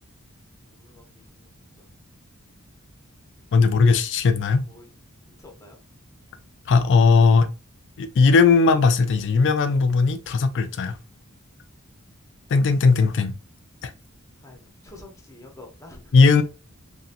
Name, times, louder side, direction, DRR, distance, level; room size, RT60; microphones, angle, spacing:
voice 1, 0.7-1.2 1.8-1.9 4.7-4.9 5.3-5.8 14.4-16.1, left 2 dB, 15° left, 0.7 m, -47 dB
voice 2, 3.5-4.6 6.7-7.5 8.0-11.0 12.5-13.4 13.8-13.9 16.1-16.4, left 4 dB, 55° left, 0.4 m, -18 dB
2.8 x 2.6 x 2.5 m
head